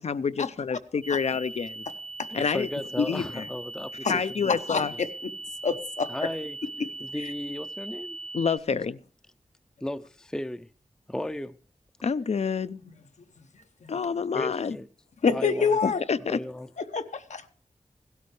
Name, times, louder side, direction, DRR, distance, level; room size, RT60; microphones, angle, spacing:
voice 1, 0.0-1.8 2.3-2.7 3.0-3.5 4.1-4.9 8.3-9.0 12.0-12.8 13.9-14.8 15.8-16.4, left 5 dB, 65° left, 0.5 m, -28 dB
sound 1, 1.0-8.6, right 2 dB, 50° right, 0.7 m, -40 dB
voice 2, 2.3-4.8 6.1-6.6 7.0-8.2 8.7-8.9 9.8-10.7 11.1-11.6 14.3-14.9 15.3-15.8 16.3-16.7, left 1 dB, 5° left, 0.5 m, -35 dB
voice 3, 4.5-5.1 5.6-6.1 13.8-13.9 15.2-16.0 16.9-17.5, left 5 dB, 80° left, 0.9 m, -26 dB
16.5 x 12.5 x 3.2 m
wide cardioid pair, 70°, 12 cm